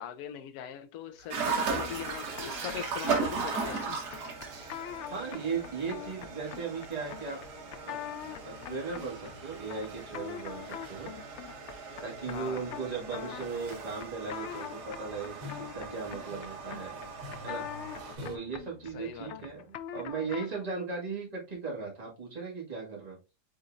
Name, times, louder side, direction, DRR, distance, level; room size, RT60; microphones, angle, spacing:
voice 1, 0.0-4.0 12.3-12.7 18.9-19.3, left 9 dB, 70° left, 1.1 m, -41 dB
sound 1, 1.1-18.4, left 1 dB, 90° right, 1.8 m, -54 dB
sound 2, 1.3-18.2, right 5 dB, 70° right, 1.7 m, -38 dB
sound 3, 1.5-20.7, left 10 dB, 85° left, 0.6 m, -44 dB
voice 2, 5.1-7.4 7.9-8.0 8.4-11.1 12.0-16.9 17.4-17.7 18.2-23.2, right 5 dB, 25° right, 1.8 m, -37 dB
5.1 x 4.3 x 2.4 m
omnidirectional pair, 1.8 m